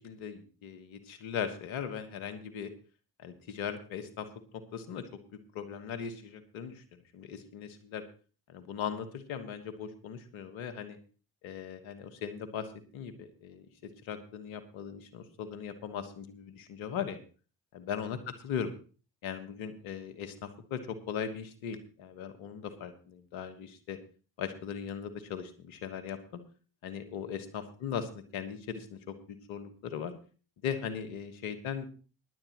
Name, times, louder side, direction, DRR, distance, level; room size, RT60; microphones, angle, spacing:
voice 1, 0.0-2.7 3.2-4.3 4.7-5.1 5.5-8.0 8.5-11.0 11.4-17.2 17.7-18.2 18.4-18.7 19.2-24.0 24.4-26.4 26.8-30.1 30.6-31.9, left 8 dB, 80° left, 10 dB, 1.5 m, -39 dB
18.5 x 10.0 x 3.0 m, 0.36 s
hypercardioid pair, 40°, 47 cm